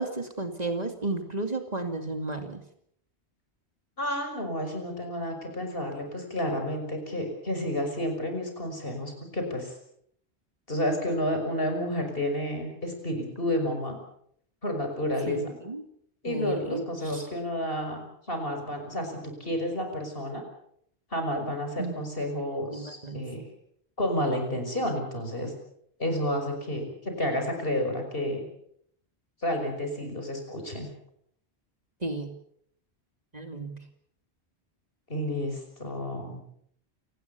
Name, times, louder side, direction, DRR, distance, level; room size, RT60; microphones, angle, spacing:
voice 1, 0.0-2.6 15.3-15.8 16.3-17.3 21.8-22.1 22.3-22.4 22.7-23.2 32.0-32.3 33.3-33.8, right 2 dB, 35° right, 6 dB, 2.6 m, -33 dB
voice 2, 4.0-9.7 10.7-14.0 14.6-15.5 16.2-18.0 18.3-20.4 21.1-23.4 24.0-25.5 26.0-28.5 29.4-30.9 35.1-36.5, left 1 dB, 55° left, 4 dB, 6.1 m, -30 dB
28.5 x 19.0 x 7.0 m, 0.69 s
omnidirectional pair, 1.1 m